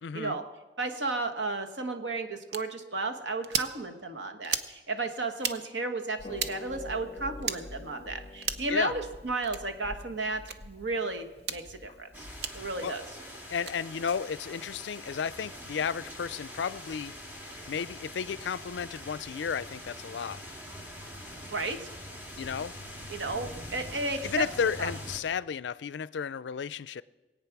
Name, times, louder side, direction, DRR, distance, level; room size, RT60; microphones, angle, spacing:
voice 1, 0.0-0.4 8.7-8.9 12.8-12.9 13.5-17.2 17.7-20.4 22.4-22.7 24.2-27.0, left 7 dB, 80° left, 0.4 m, -33 dB
voice 2, 0.8-12.3 12.5-13.0 21.5-21.9 23.1-24.5 24.8-24.9, right 3 dB, 90° right, 1.3 m, -33 dB
sound 1, 2.5-2.6 3.4-3.7 4.4-4.7 5.4-5.6 6.4-6.5 7.4-7.6 8.4-8.7 9.4-9.6 10.4-10.6 11.4-11.6 12.4-12.5 13.5-13.8, right 7 dB, 70° right, 0.7 m, -32 dB
Harp, 6.2-12.9, left 2 dB, 35° left, 0.7 m, -46 dB
sound 2, 12.1-25.2, left 1 dB, 10° right, 1.9 m, -44 dB
21.5 x 8.8 x 6.0 m
head